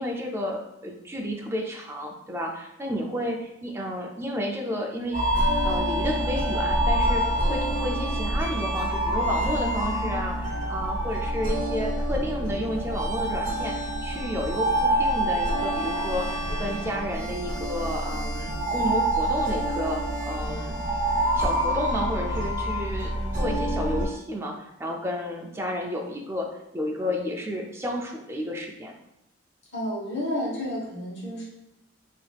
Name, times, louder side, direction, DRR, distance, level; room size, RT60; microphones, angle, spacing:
voice 1, 0.0-5.2 5.6-20.8 21.3-28.9, equal, 15° right, 1 dB, 0.4 m, -31 dB
sound 1, 5.1-24.1, right 1 dB, 45° right, 1.4 m, -26 dB
voice 2, 29.7-31.4, left 1 dB, 60° left, -5 dB, 1.2 m, -30 dB
3.3 x 2.8 x 2.3 m, 0.89 s
head